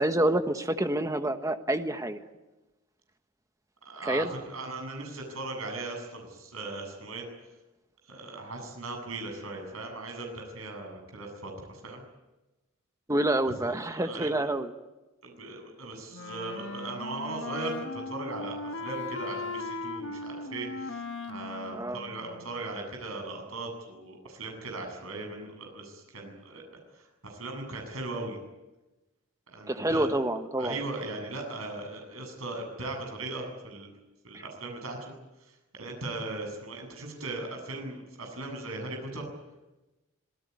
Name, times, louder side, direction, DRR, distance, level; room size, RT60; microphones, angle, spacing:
voice 1, 0.0-2.2 4.0-4.3 13.1-14.7 21.7-22.0 29.7-30.8, right 1 dB, 15° right, 7 dB, 1.4 m, -27 dB
voice 2, 3.8-7.2 8.0-12.0 13.7-14.4 15.2-21.0 21.3-26.6 26.9-28.4 29.5-30.1 30.6-33.9 34.2-35.1 35.5-39.3, right 2 dB, 70° right, 3 dB, 7.9 m, -38 dB
Wind instrument woodwind instrument, 16.1-22.7, left 3 dB, 60° left, 1.7 m, -38 dB
26.5 x 18.5 x 9.7 m, 1.1 s
head